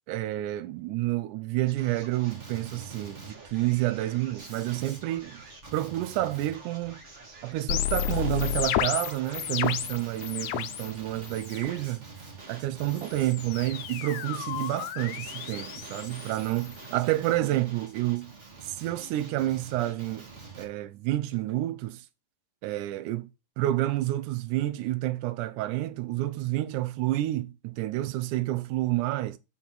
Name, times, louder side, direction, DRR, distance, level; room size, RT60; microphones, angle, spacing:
voice 1, 0.1-5.4 5.7-7.0 7.4-12.0 12.5-18.3 18.6-20.3 20.6-22.1 22.6-23.3 23.6-29.4, right 15 dB, 85° right, 2.1 m, -29 dB
Male speech man speaking, 1.7-20.7, right 3 dB, 30° right, 1.4 m, -46 dB
sound 1, 7.7-10.9 11.2-11.8 12.8-16.9, left 12 dB, 85° left, 2.1 m, -32 dB
5.3 x 4.6 x 5.7 m
omnidirectional pair, 3.5 m